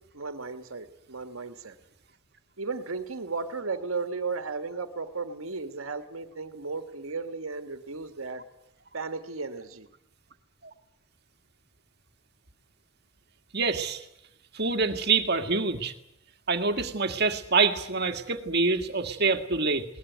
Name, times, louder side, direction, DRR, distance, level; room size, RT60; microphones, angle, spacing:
voice 1, 0.1-1.7 2.6-8.4 8.9-9.9, right 4 dB, 85° right, 8 dB, 1.6 m, -35 dB
voice 2, 13.5-14.0 14.5-15.9 16.5-19.8, right 4 dB, 50° right, 7 dB, 1.9 m, -26 dB
21.5 x 19.0 x 9.4 m, 0.78 s
head